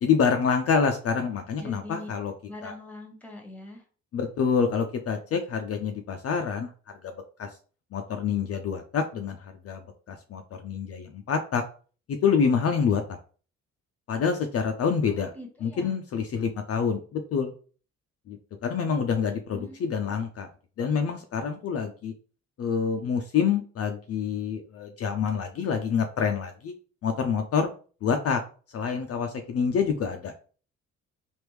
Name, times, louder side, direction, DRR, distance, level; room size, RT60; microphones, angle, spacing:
voice 1, 0.0-2.3 2.6-2.7 4.1-6.7 7.0-7.5 7.9-11.6 12.2-13.2 14.1-15.3 15.6-17.5 18.3-20.5 20.8-22.1 22.6-26.7 27.0-27.7 28.0-28.4 28.7-30.3, left 6 dB, 50° left, 5 dB, 0.5 m, -27 dB
voice 2, 1.6-2.1 2.5-3.8 15.0-15.9 19.5-20.1, left 2 dB, 5° left, 3 dB, 1.0 m, -43 dB
3.4 x 2.6 x 3.1 m, 0.39 s
cardioid pair, 90°, 30 cm